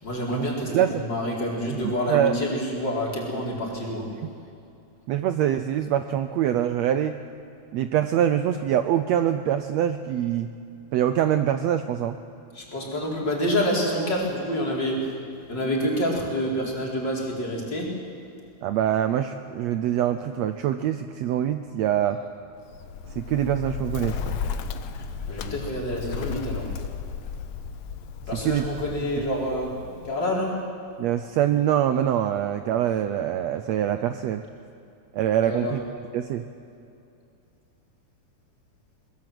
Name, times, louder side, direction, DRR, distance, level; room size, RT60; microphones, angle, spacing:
voice 1, 0.0-4.1 12.5-15.1 15.5-17.9 25.2-26.7 28.3-30.6 35.4-35.7, equal, 35° left, -2 dB, 4.8 m, -27 dB
voice 2, 0.7-1.0 1.7-2.4 4.2-4.3 5.1-7.2 7.7-10.5 10.9-12.2 18.6-22.2 23.2-24.4 28.4-28.6 31.0-34.4 35.1-35.8 36.1-36.5, right 10 dB, 75° right, 9 dB, 1.7 m, -24 dB
Bird, 22.6-30.4, left 6 dB, 65° left, 2.0 m, -34 dB
23.0 x 21.0 x 7.8 m, 2.6 s
omnidirectional pair, 3.5 m